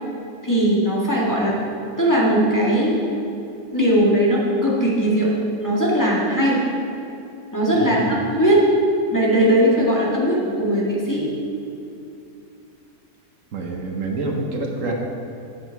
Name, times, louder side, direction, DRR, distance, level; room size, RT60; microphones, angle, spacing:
voice 1, 0.4-1.5 2.0-3.0 3.7-5.3 5.6-6.6 7.5-8.0 8.3-8.6 9.1-11.3, equal, 10° left, -7 dB, 1.8 m, -19 dB
voice 2, 7.7-8.2 13.5-14.9, right 3 dB, 60° right, 0 dB, 1.4 m, -27 dB
10.0 x 8.0 x 4.6 m, 2.7 s
omnidirectional pair, 1.6 m